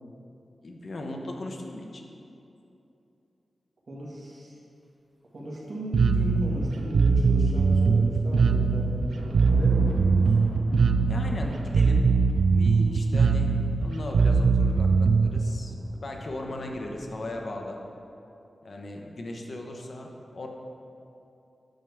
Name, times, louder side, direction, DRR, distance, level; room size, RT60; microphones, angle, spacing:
voice 1, 0.6-2.0 11.1-12.1 12.5-15.7 16.0-17.8 18.6-20.5, left 1 dB, 55° left, 2 dB, 0.8 m, -37 dB
voice 2, 3.9-4.6 5.3-10.3, equal, 55° right, -5 dB, 1.8 m, -36 dB
Bass guitar, 5.9-15.4, right 4 dB, 85° right, 0.3 m, -21 dB
sound 1, 6.4-7.4 7.7-17.2, right 1 dB, 20° right, 1.8 m, -42 dB
8.9 x 6.5 x 3.5 m, 2.8 s
wide cardioid pair, 80°, 0 cm